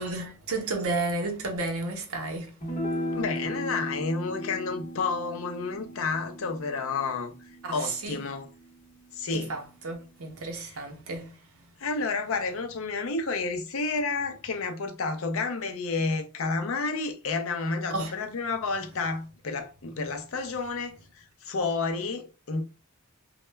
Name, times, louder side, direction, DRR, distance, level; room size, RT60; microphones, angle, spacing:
voice 1, 0.0-2.6 7.6-8.2 9.3-11.6 17.9-18.1, right 3 dB, 75° right, 0.6 m, -32 dB
sound 1, 2.6-9.1, equal, 35° left, 0.8 m, -37 dB
voice 2, 3.1-8.5 9.1-9.5 11.8-22.6, left 4 dB, 65° left, 0.5 m, -30 dB
2.1 x 2.0 x 3.2 m
head